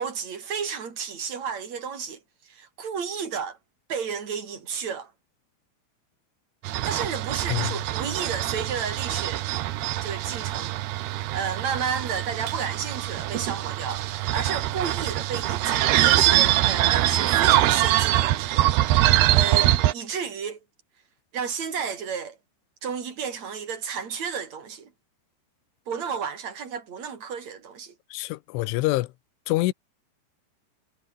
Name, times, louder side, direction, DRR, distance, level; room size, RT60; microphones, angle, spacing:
voice 1, 0.0-2.2 2.5-3.6 3.9-5.1 6.8-9.5 10.0-18.7 19.3-20.6 21.3-22.4 22.8-24.9 25.9-27.9, right 6 dB, 40° right, 5.1 m, -32 dB
sound 1, 6.6-19.9, right 15 dB, 70° right, 2.8 m, -23 dB
voice 2, 28.1-29.1 29.5-29.7, left 19 dB, 85° left, 3.3 m, -26 dB
omnidirectional pair, 5.4 m